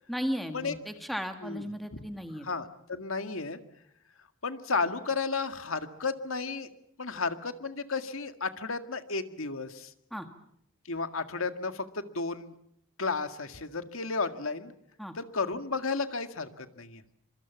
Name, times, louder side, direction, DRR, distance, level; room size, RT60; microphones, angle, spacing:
voice 1, 0.1-2.5 10.1-10.3 15.0-15.1, equal, ahead, 6 dB, 1.7 m, -35 dB
voice 2, 2.4-3.6 4.4-6.7 7.0-9.9 10.9-12.5 13.0-14.7 15.1-17.0, left 4 dB, 85° left, 9 dB, 1.9 m, -33 dB
26.0 x 24.5 x 7.2 m, 0.72 s
head